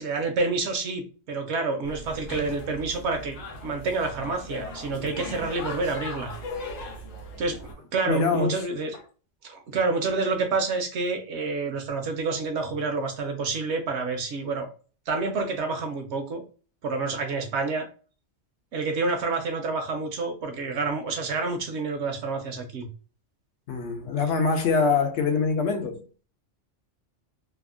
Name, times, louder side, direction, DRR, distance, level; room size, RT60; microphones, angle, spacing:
voice 1, 0.0-3.4 3.6-6.3 7.4-8.9 9.4-14.7 15.1-16.4 16.8-17.9 18.7-22.9, right 3 dB, 65° right, 0.9 m, -28 dB
sound 1, 1.8-7.7, left 2 dB, 90° left, 1.1 m, -38 dB
voice 2, 8.1-8.6 23.7-26.0, left 4 dB, 70° left, 0.8 m, -24 dB
3.4 x 2.0 x 2.3 m
omnidirectional pair, 1.3 m